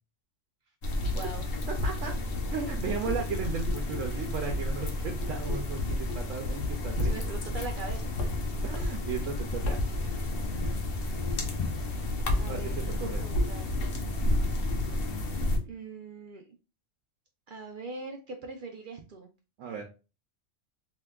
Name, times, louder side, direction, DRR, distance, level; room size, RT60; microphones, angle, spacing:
sound 1, 0.8-15.6, left 1 dB, 55° left, 0.8 m, -31 dB
voice 1, 1.1-1.4 7.0-8.2 12.4-13.7 15.6-16.6 17.5-19.3, right 3 dB, 60° right, 3 dB, 0.5 m, -41 dB
voice 2, 1.7-2.2 2.5-7.3 8.6-9.8 12.5-13.2 19.6-19.8, right 5 dB, 85° right, 2 dB, 1.0 m, -36 dB
3.3 x 2.8 x 2.2 m, 0.30 s
omnidirectional pair, 1.3 m